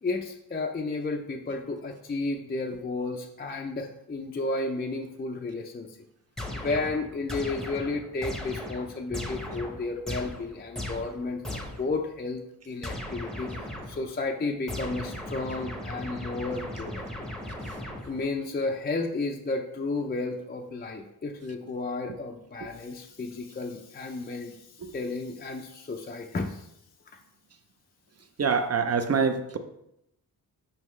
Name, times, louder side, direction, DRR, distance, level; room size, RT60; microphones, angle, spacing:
voice 1, 0.0-5.9 6.5-17.3 18.1-24.6 24.9-26.7, left 3 dB, 25° left, 3 dB, 0.5 m, -32 dB
sound 1, 6.4-12.0 12.8-14.1 14.7-18.4, left 1 dB, ahead, 0.8 m, -37 dB
voice 2, 28.4-29.6, right 5 dB, 40° right, 9 dB, 0.6 m, -25 dB
5.6 x 5.4 x 3.1 m, 0.80 s
wide cardioid pair, 100°, 38 cm